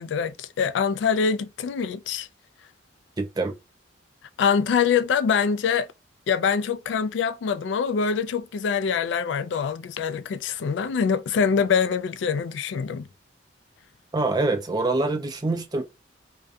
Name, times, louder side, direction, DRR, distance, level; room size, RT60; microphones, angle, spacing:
voice 1, 0.0-2.3 4.4-5.9 6.3-13.1, left 6 dB, 70° left, 0.3 m, -24 dB
voice 2, 3.2-3.5 14.1-15.8, right 2 dB, 20° right, 0.4 m, -25 dB
2.4 x 2.2 x 2.5 m
head